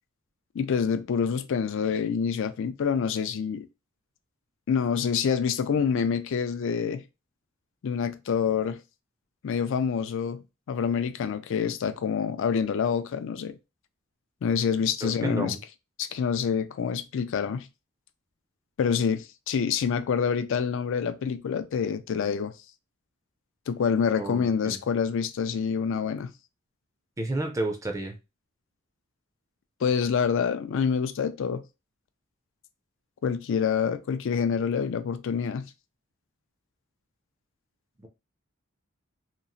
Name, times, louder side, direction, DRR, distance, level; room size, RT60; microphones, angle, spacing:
voice 1, 0.5-3.7 4.7-7.0 7.8-8.8 9.4-10.4 10.7-13.6 14.4-15.6 16.0-17.7 18.8-22.5 23.7-26.3 29.8-31.6 33.2-35.7, left 6 dB, 65° left, 0.4 m, -27 dB
voice 2, 15.0-15.6 24.2-24.8 27.2-28.1 38.0-38.1, right 2 dB, 15° right, 0.4 m, -31 dB
2.9 x 2.4 x 2.6 m
head